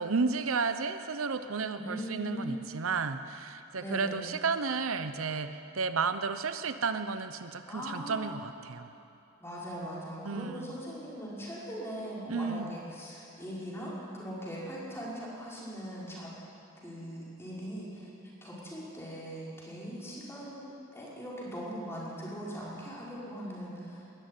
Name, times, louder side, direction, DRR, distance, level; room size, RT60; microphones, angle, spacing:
voice 1, 0.0-5.5 5.7-8.9 10.2-10.8 12.3-12.7, right 4 dB, 80° right, 10 dB, 0.8 m, -32 dB
voice 2, 1.7-2.6 3.8-4.2 7.7-8.3 9.4-16.3 16.8-24.0, equal, 10° left, -6 dB, 5.4 m, -40 dB
20.5 x 13.5 x 9.9 m, 2.7 s
head